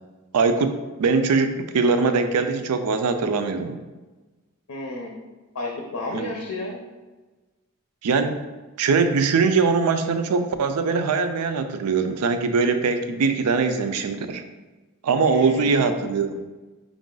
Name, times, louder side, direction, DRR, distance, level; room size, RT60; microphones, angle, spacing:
voice 1, 0.3-3.8 6.1-6.3 8.0-8.4 8.8-14.4 15.0-16.4, right 4 dB, 85° right, 8 dB, 0.4 m, -22 dB
voice 2, 4.7-5.1 5.5-6.8 15.2-15.8, left 2 dB, 85° left, 0 dB, 0.7 m, -32 dB
5.3 x 2.5 x 3.8 m, 1.2 s
head